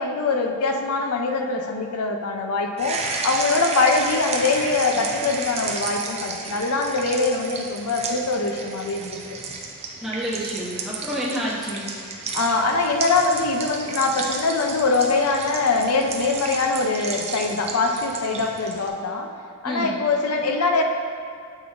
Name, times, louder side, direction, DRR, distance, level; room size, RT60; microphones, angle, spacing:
voice 1, 0.0-9.4 12.3-19.3 19.6-20.8, left 3 dB, 75° left, 3 dB, 0.6 m, -23 dB
sound 1, 2.8-18.9, right 4 dB, 30° right, 0.5 m, -33 dB
voice 2, 10.0-11.9 19.6-19.9, equal, ahead, -7 dB, 1.0 m, -28 dB
8.1 x 3.8 x 3.4 m, 2.4 s
head